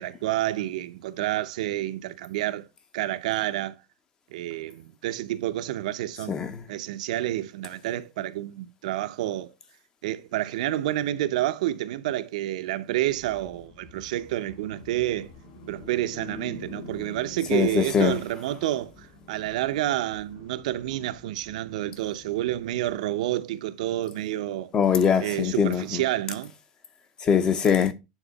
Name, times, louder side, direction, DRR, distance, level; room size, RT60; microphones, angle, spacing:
voice 1, 0.0-2.7 2.9-3.7 4.3-6.4 6.7-9.5 10.0-15.3 15.7-24.7 25.2-26.5, right 14 dB, 75° right, 0.6 m, -29 dB
voice 2, 6.3-6.6 17.5-18.2 24.7-26.0 27.2-27.9, left 7 dB, 20° left, 0.5 m, -22 dB
sound 1, 13.0-23.0, left 3 dB, 55° left, 3.2 m, -47 dB
9.0 x 3.6 x 4.0 m
supercardioid pair, 180°, 4 cm